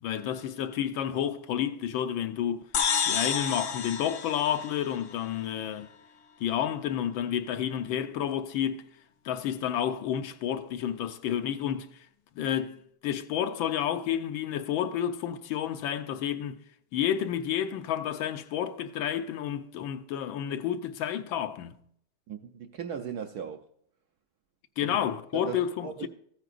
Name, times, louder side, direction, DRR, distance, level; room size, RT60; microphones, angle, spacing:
voice 1, 0.0-2.7 3.1-5.9 6.4-8.8 9.2-11.9 12.4-16.6 16.9-21.8 24.8-26.1, left 10 dB, 80° left, 1.5 m, -30 dB
sound 1, 2.7-5.3, left 7 dB, 60° left, 1.1 m, -30 dB
voice 2, 22.3-23.7 24.8-25.0 25.3-26.1, right 7 dB, 70° right, 0.9 m, -38 dB
14.5 x 8.9 x 2.5 m
omnidirectional pair, 2.2 m